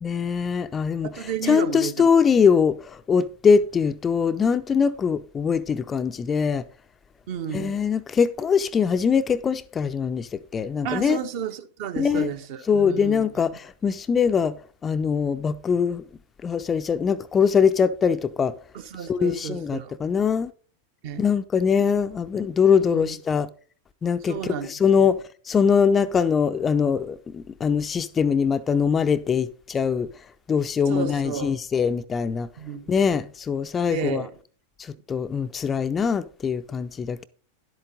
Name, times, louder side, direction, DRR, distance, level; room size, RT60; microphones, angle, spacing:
voice 1, 0.0-6.6 7.5-11.2 12.0-12.3 12.7-14.6 14.8-16.0 16.4-18.5 19.1-20.5 21.2-23.5 24.0-30.1 30.5-32.5 32.9-34.2 34.8-37.3, left 6 dB, 20° left, 0.5 m, -22 dB
voice 2, 1.0-2.1 7.3-7.8 10.8-13.3 18.7-20.0 21.0-21.3 22.9-23.1 24.2-24.7 25.0-25.1 30.9-31.5 32.6-32.9 33.9-34.3, right 7 dB, 45° right, 0.9 m, -32 dB
11.0 x 7.9 x 3.9 m
figure-of-eight pair, 90°, 0 cm